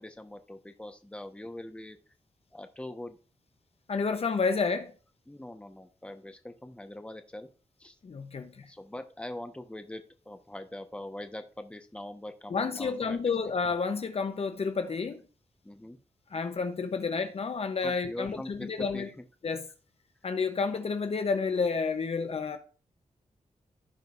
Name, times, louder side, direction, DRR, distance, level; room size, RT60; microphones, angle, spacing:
voice 1, 0.0-2.0 2.5-3.2 5.3-7.5 7.8-8.0 8.7-13.2 15.6-16.0 17.8-19.1, left 1 dB, 10° left, 1.1 m, -42 dB
voice 2, 3.9-4.9 8.0-8.7 12.5-15.2 16.3-19.1 19.4-19.6 20.2-22.6, left 4 dB, 50° left, 0.9 m, -30 dB
15.5 x 5.1 x 2.6 m
wide cardioid pair, 100°, 13 cm